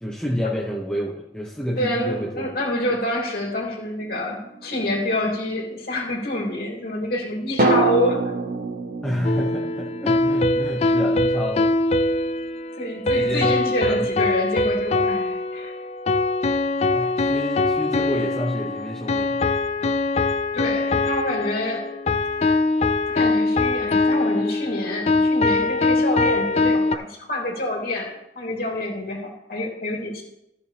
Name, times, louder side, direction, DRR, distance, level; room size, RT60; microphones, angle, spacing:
voice 1, 0.0-2.5 9.0-11.7 13.1-14.1 16.9-19.4, equal, 5° left, -3 dB, 1.0 m, -28 dB
voice 2, 1.8-8.2 10.8-10.9 12.7-15.7 20.5-21.9 23.1-30.2, left 1 dB, 55° left, -2 dB, 3.1 m, -27 dB
sound 1, 4.0-5.2 7.6-11.6 11.8-11.9, right 3 dB, 50° right, 1.0 m, -26 dB
sound 2, 9.2-27.0, left 2 dB, 35° left, 0.4 m, -22 dB
15.0 x 7.0 x 3.4 m, 0.85 s
head